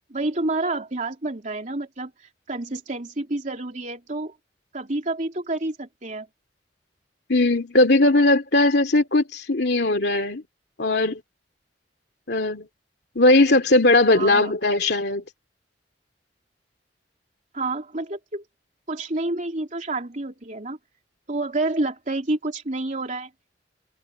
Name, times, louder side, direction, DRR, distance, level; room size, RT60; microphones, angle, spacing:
voice 1, 0.1-4.4 4.7-6.3 14.1-14.5 17.5-18.4 18.9-20.8 21.3-23.3, right 2 dB, 45° right, 3.2 m, -29 dB
voice 2, 7.3-10.4 10.8-11.2 12.3-12.7 13.1-15.2, left 2 dB, 65° left, 2.8 m, -19 dB
head